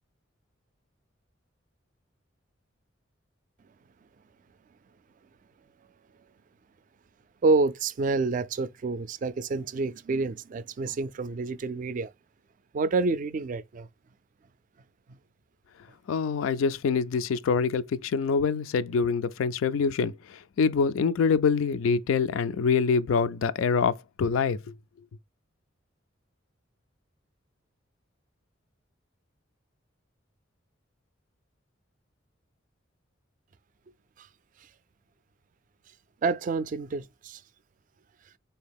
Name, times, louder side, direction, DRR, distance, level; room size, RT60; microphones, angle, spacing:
voice 1, 7.4-12.1 12.7-13.9 15.1-15.2 34.2-34.3 36.2-37.4, right 3 dB, 40° right, 0.3 m, -28 dB
voice 2, 16.1-24.6, left 5 dB, 90° left, 0.4 m, -25 dB
4.2 x 2.8 x 3.4 m
head